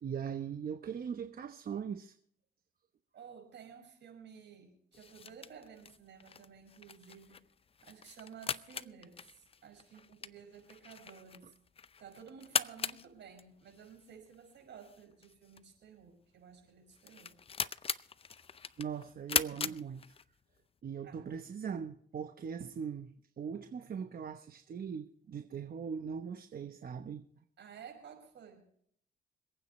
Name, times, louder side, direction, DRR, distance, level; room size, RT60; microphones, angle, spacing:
voice 1, 0.0-2.1 18.8-20.1 20.8-27.2, right 7 dB, 50° right, 1.0 m, -40 dB
voice 2, 3.1-7.4 7.8-11.5 12.0-17.3 21.0-21.2 27.6-28.6, right 7 dB, 65° right, 5.6 m, -53 dB
sound 1, 4.9-20.6, left 6 dB, 30° left, 0.5 m, -40 dB
26.5 x 9.2 x 3.2 m
cardioid pair, 90°, 20 cm